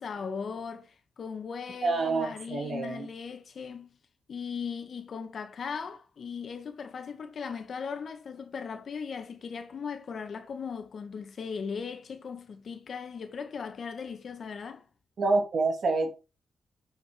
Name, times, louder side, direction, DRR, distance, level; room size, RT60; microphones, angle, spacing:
voice 1, 0.0-4.0 4.3-14.8, left 6 dB, 60° left, 1.7 m, -38 dB
voice 2, 1.8-3.1 15.2-16.2, right 3 dB, 55° right, 2.7 m, -27 dB
9.1 x 5.8 x 4.8 m
cardioid pair, 100°, 0 cm